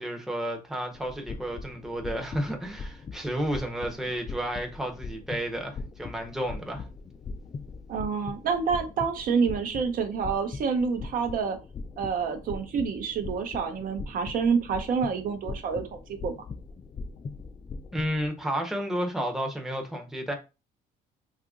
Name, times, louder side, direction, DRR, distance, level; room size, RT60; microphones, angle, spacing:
voice 1, 0.0-6.8 17.9-20.3, equal, ahead, 0.7 m, -32 dB
sound 1, 0.9-18.3, left 4 dB, 25° left, 0.3 m, -41 dB
voice 2, 7.9-11.6 12.0-16.3, right 5 dB, 55° right, 0.6 m, -28 dB
2.8 x 2.4 x 3.6 m
cardioid pair, 110°, 17 cm